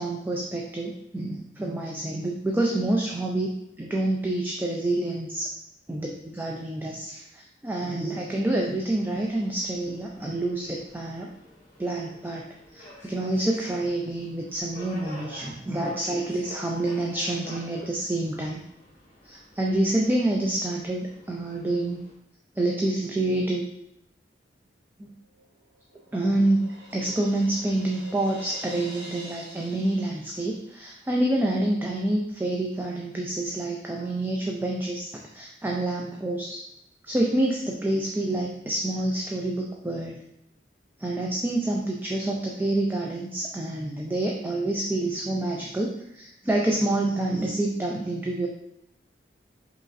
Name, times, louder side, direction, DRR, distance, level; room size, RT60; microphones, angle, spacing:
voice 1, 0.0-3.5 3.8-5.5 5.9-11.3 11.8-12.4 12.7-18.6 19.2-22.0 22.6-23.7 25.0-25.1 26.1-36.6 37.0-40.2 41.0-48.5, right 1 dB, 10° right, -1 dB, 0.3 m, -27 dB
Subway metro underground, 8.5-22.1, left 1 dB, 45° left, 1.3 m, -49 dB
Crash cymbal, 25.4-31.1, right 1 dB, 70° right, 0.9 m, -46 dB
4.9 x 3.0 x 2.5 m, 0.81 s
head